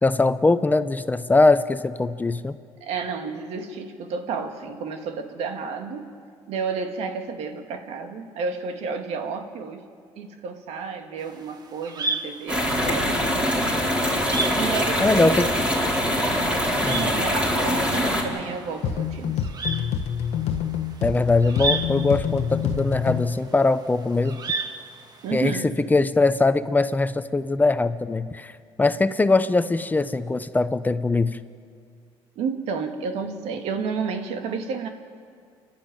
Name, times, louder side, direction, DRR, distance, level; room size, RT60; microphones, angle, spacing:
voice 1, 0.0-2.5 15.0-15.5 16.8-17.0 21.0-24.4 25.3-28.5 28.8-31.4, left 3 dB, 15° left, 12 dB, 0.8 m, -21 dB
voice 2, 2.8-6.1 6.5-9.8 10.2-13.5 14.5-15.5 16.8-19.3 25.2-25.7 32.4-34.9, right 5 dB, 75° right, 5 dB, 2.1 m, -31 dB
sound 1, 11.2-25.5, right 3 dB, 40° right, 1.7 m, -35 dB
sound 2, 12.5-18.2, equal, 10° right, 5.0 m, -23 dB
sound 3, 18.8-23.4, left 8 dB, 80° left, 1.1 m, -27 dB
28.5 x 12.0 x 9.2 m, 2.2 s
cardioid pair, 105°, 11 cm